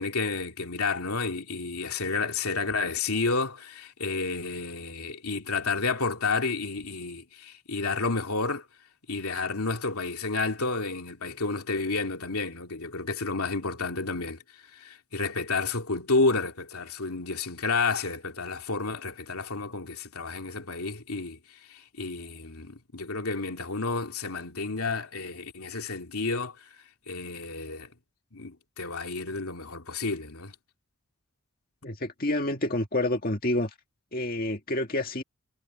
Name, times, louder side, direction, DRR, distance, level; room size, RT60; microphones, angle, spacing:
voice 1, 0.0-8.7 9.1-14.4 14.7-21.4 21.7-26.7 27.1-27.9 28.3-30.5, left 3 dB, 80° left, 2.8 m, -30 dB
voice 2, 31.8-33.7 34.1-35.2, left 1 dB, 40° left, 1.9 m, -28 dB
head